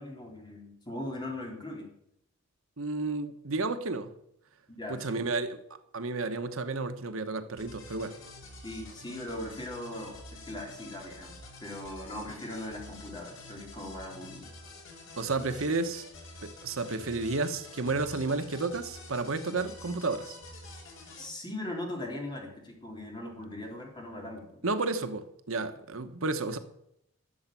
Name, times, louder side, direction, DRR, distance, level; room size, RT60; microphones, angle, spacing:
voice 1, 0.0-1.9 4.7-5.3 8.6-10.1 10.5-11.3 11.6-14.5 21.2-24.6, left 1 dB, 20° left, 1 dB, 3.4 m, -39 dB
voice 2, 2.8-4.1 4.9-5.6 5.9-8.2 15.2-16.0 16.4-20.4 24.6-26.6, right 3 dB, 75° right, 9 dB, 1.1 m, -32 dB
sound 1, 7.6-21.3, left 2 dB, 65° left, 4.3 m, -48 dB
12.5 x 7.1 x 9.0 m, 0.75 s
head